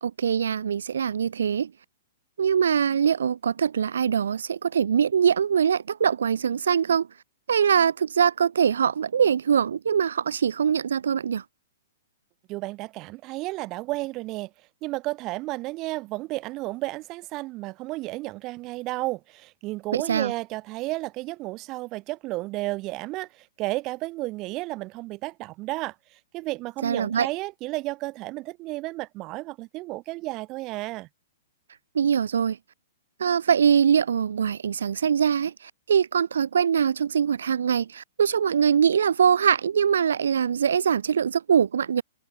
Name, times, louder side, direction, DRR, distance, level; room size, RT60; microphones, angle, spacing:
voice 1, 0.0-1.7 2.4-7.1 7.5-11.4 19.9-20.3 26.8-27.3 31.9-32.6 33.2-42.0, right 7 dB, 85° right, 0.4 m, -23 dB
voice 2, 12.5-14.5 14.8-31.1, right 20 dB, 30° right, 4.6 m, -32 dB
hypercardioid pair, 145°, 0 cm